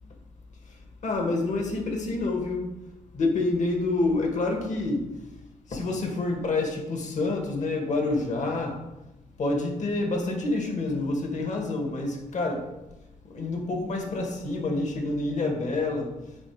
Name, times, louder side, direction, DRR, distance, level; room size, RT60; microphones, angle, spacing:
voice 1, 1.0-2.7 3.1-5.0 5.7-8.8 9.4-12.6 13.3-16.1, left 2 dB, 55° left, 2 dB, 1.9 m, -27 dB
8.8 x 4.0 x 4.8 m, 0.98 s
supercardioid pair, 50°, 15 cm